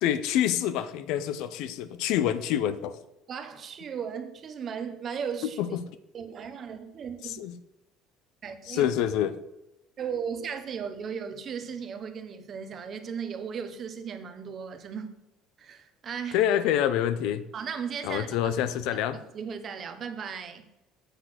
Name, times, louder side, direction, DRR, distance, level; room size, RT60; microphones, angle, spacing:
voice 1, 0.0-3.0 5.6-5.8 7.2-7.5 8.7-9.3 16.3-17.4 18.0-19.2, left 10 dB, 60° left, 0.6 m, -27 dB
voice 2, 3.3-5.6 6.1-7.4 8.4-8.9 10.0-15.1 15.6-16.4 17.5-18.5 19.3-20.7, right 7 dB, 30° right, 0.8 m, -36 dB
8.0 x 6.1 x 6.2 m
cardioid pair, 175°, 0 cm